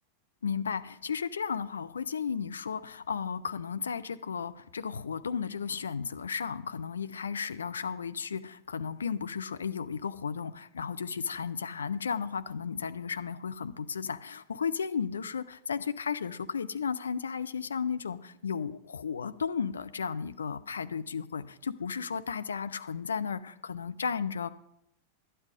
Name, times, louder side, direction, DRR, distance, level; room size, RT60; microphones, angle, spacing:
voice 1, 0.4-24.5, left 6 dB, 70° left, 12 dB, 0.5 m, -34 dB
11.0 x 9.9 x 5.1 m, 0.79 s
figure-of-eight pair, 90°, 0 cm